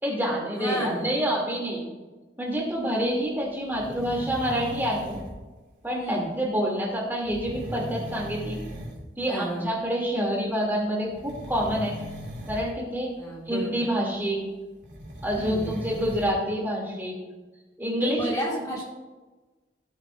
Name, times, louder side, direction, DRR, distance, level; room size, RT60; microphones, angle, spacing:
voice 1, 0.0-1.8 2.4-5.2 5.8-8.6 9.2-12.0 12.5-13.1 13.5-14.4 15.2-17.2 17.8-18.3, equal, 10° right, -3 dB, 2.5 m, -27 dB
voice 2, 0.5-1.1 5.8-6.3 9.3-9.7 13.2-13.9 15.3-15.8 18.0-18.8, right 1 dB, 20° left, -4 dB, 1.7 m, -32 dB
sound 1, 3.7-5.4 7.2-9.0 9.3-9.7 11.1-12.7 14.8-16.3, equal, 85° right, 2.6 m, -38 dB
17.0 x 7.9 x 2.5 m, 1.2 s
head